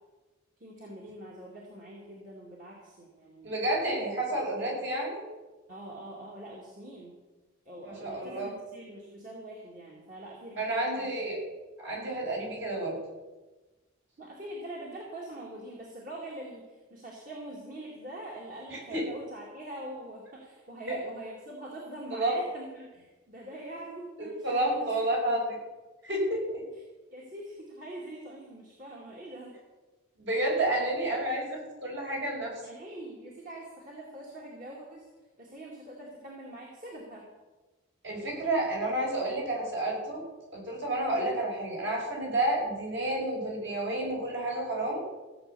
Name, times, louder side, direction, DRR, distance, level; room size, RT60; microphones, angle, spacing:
voice 1, 0.6-3.5 5.7-7.2 7.7-11.1 14.2-25.4 27.1-29.5 32.6-35.1 35.4-37.3, right 1 dB, 40° right, -3 dB, 2.3 m, -44 dB
voice 2, 3.4-5.2 7.8-8.5 10.6-11.4 11.8-13.0 18.7-19.0 20.9-21.0 22.2-22.4 24.4-25.5 26.0-26.6 30.2-32.5 38.0-40.2 40.5-45.0, right 1 dB, 60° right, -2 dB, 5.7 m, -30 dB
15.5 x 8.2 x 6.9 m, 1.2 s
head